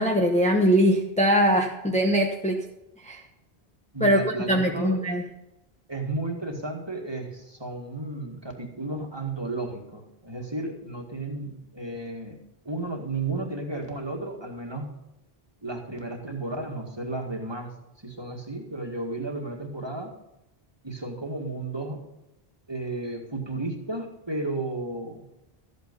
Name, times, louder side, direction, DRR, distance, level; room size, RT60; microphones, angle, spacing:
voice 1, 0.0-2.6 3.0-3.2 4.0-4.2 4.5-5.2, equal, 5° left, 1 dB, 1.0 m, -21 dB
voice 2, 3.9-5.0 5.9-14.9 15.6-20.1 20.8-22.0 22.7-25.3, right 2 dB, 25° right, 1 dB, 2.0 m, -33 dB
13.5 x 8.5 x 5.4 m, 0.91 s
omnidirectional pair, 1.0 m